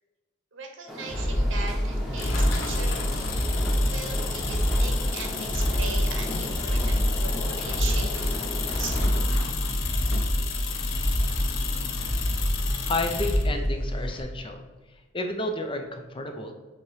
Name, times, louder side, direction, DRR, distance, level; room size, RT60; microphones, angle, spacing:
voice 1, 0.5-3.3 3.9-9.0, right 4 dB, 75° right, 4 dB, 1.1 m, -39 dB
sound 1, 0.9-9.2, equal, ahead, 1.0 m, -37 dB
sound 2, 1.1-14.2, equal, 70° left, 1.7 m, -27 dB
sound 3, 2.2-13.5, left 6 dB, 90° left, 0.7 m, -34 dB
voice 2, 12.9-14.6 15.1-16.5, left 2 dB, 25° left, 5 dB, 0.6 m, -31 dB
7.4 x 2.9 x 4.8 m, 1.3 s
head